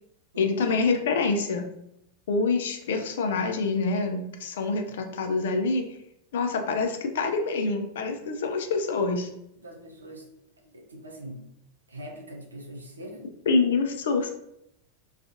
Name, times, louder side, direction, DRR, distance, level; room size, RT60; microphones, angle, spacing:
voice 1, 0.4-1.7 2.3-5.8 6.3-9.3 13.5-14.3, left 4 dB, 60° left, 5 dB, 0.4 m, -26 dB
voice 2, 9.6-10.3 10.6-11.5 11.9-13.3, equal, 75° right, 0 dB, 0.5 m, -43 dB
2.4 x 2.4 x 2.5 m, 0.78 s
figure-of-eight pair, 90°, 0 cm